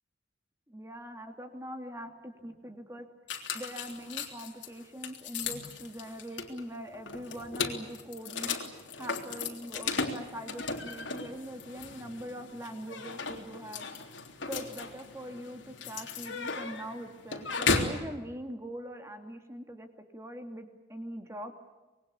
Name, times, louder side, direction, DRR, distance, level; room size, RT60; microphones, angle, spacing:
voice 1, 0.7-3.1 3.5-8.6 9.0-13.9 14.5-21.5, equal, 15° right, 5 dB, 2.7 m, -42 dB
sound 1, 3.3-18.0, left 4 dB, 75° left, 3.4 m, -36 dB
26.0 x 22.0 x 8.6 m, 1.2 s
head